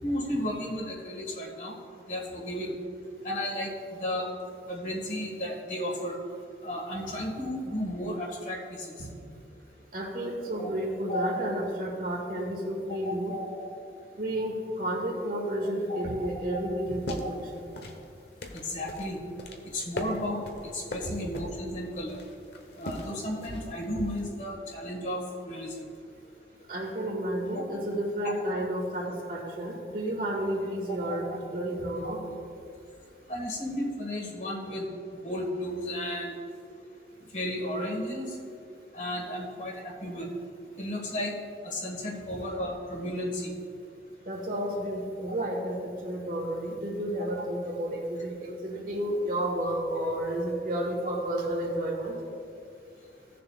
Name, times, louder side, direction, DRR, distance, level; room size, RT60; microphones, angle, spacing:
voice 1, 0.0-1.8 2.1-2.7 3.2-4.3 4.7-6.1 6.6-8.6 11.1-11.3 13.0-13.7 18.6-19.2 19.7-20.4 20.7-22.2 22.8-25.2 25.4-25.9 31.0-31.2 33.3-34.9 35.2-36.3 37.3-38.3 38.9-40.3 40.8-41.4 41.6-43.5, left 1 dB, 45° left, -1 dB, 1.6 m, -33 dB
voice 2, 9.9-13.3 14.2-17.2 17.5-17.7 26.7-31.3 31.5-32.2 44.3-52.2, right 1 dB, 50° right, -2 dB, 1.9 m, -31 dB
sound 1, 16.8-24.3, left 1 dB, 70° left, 1.0 m, -40 dB
17.0 x 6.8 x 2.4 m, 2.5 s
head